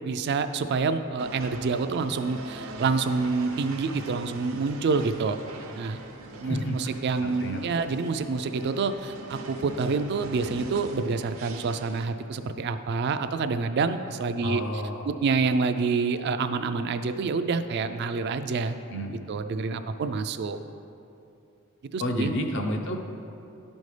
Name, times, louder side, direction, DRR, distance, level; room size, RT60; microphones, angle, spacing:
voice 1, 0.0-5.4 5.7-6.0 6.3-14.6 15.1-18.8 19.3-20.6 21.9-22.3, right 4 dB, 50° right, 9 dB, 0.3 m, -27 dB
sound 1, 1.2-12.1, right 2 dB, 85° right, 0.7 m, -42 dB
voice 2, 6.4-7.9 14.4-15.1 18.9-19.3 22.0-23.0, equal, 60° left, 3 dB, 0.7 m, -31 dB
11.5 x 5.3 x 3.2 m, 2.7 s
head